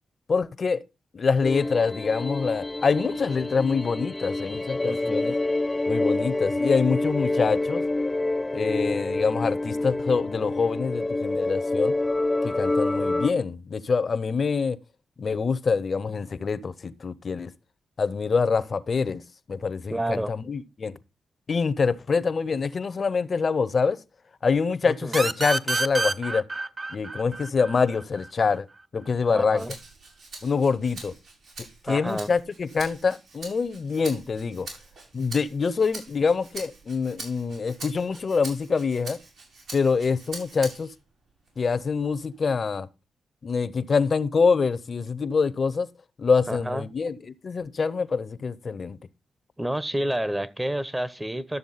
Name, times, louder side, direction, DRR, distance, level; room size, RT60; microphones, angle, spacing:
voice 1, 0.3-0.8 1.1-5.4 5.9-7.8 8.5-11.9 12.4-14.8 15.2-17.5 18.0-19.2 19.5-21.0 21.5-24.0 24.4-26.4 26.9-28.6 28.9-29.6 30.4-31.1 31.6-34.7 35.1-39.2 39.7-40.9 41.6-42.9 43.4-45.9 46.2-49.0, left 5 dB, 50° left, 0.8 m, -25 dB
sound 1, 1.4-13.3, left 2 dB, 20° left, 0.5 m, -27 dB
voice 2, 4.8-5.3 19.9-20.3 24.8-25.2 29.3-29.7 31.9-32.3 46.5-46.9 49.6-51.6, right 1 dB, 15° right, 0.9 m, -29 dB
sound 2, 25.1-28.5, right 3 dB, 40° right, 0.8 m, -28 dB
Rattle (instrument), 29.6-41.0 41.5-42.7, right 3 dB, 80° right, 5.9 m, -43 dB
12.0 x 7.0 x 4.1 m
cardioid pair, 60°, 0 cm